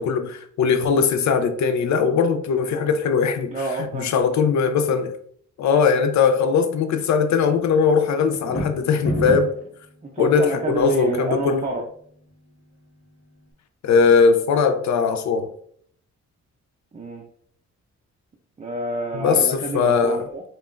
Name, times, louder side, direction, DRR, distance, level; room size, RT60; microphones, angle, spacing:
voice 1, 0.0-3.5 3.9-5.2 5.6-9.5 10.2-11.6 13.8-15.5 19.1-19.5 19.7-20.2, left 5 dB, 70° left, 0.5 m, -20 dB
voice 2, 3.5-4.1 10.0-11.8 16.9-17.3 18.6-20.4, right 2 dB, 25° right, 0.5 m, -28 dB
sound 1, 8.3-9.7, equal, 50° left, 1.3 m, -26 dB
5.4 x 2.3 x 2.4 m
cardioid pair, 125°, 29 cm